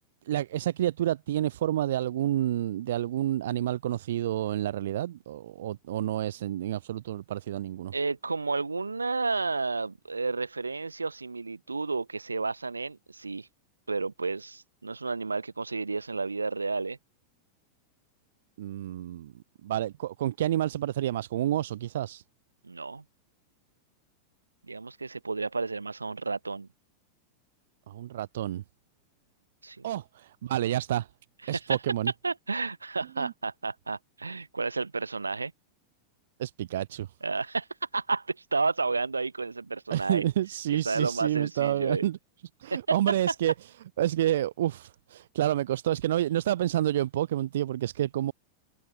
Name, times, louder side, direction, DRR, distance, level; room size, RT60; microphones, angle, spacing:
voice 1, 0.3-7.9 18.6-22.2 27.9-28.6 29.8-31.1 31.5-32.1 33.2-33.3 36.4-37.1 39.9-42.2 42.6-43.5 44.0-48.3, right 12 dB, 60° right, 0.4 m, -29 dB
voice 2, 7.9-13.5 13.9-17.0 22.6-23.0 24.7-26.7 29.6-29.9 31.4-31.8 32.2-35.5 37.2-37.7 37.9-40.2 40.7-42.1 42.7-43.0, right 3 dB, 80° right, 0.9 m, -31 dB
figure-of-eight pair, 90°, 0 cm